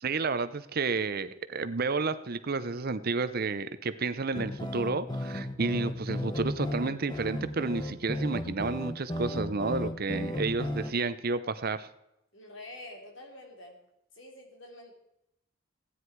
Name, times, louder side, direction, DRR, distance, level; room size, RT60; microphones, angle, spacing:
voice 1, 0.0-11.9, right 4 dB, 50° right, 13 dB, 0.7 m, -31 dB
sound 1, 4.3-10.9, left 1 dB, 20° left, 1.1 m, -35 dB
voice 2, 12.3-13.8 14.1-14.9, left 1 dB, 65° left, 2 dB, 3.1 m, -47 dB
16.0 x 9.9 x 4.7 m, 0.84 s
head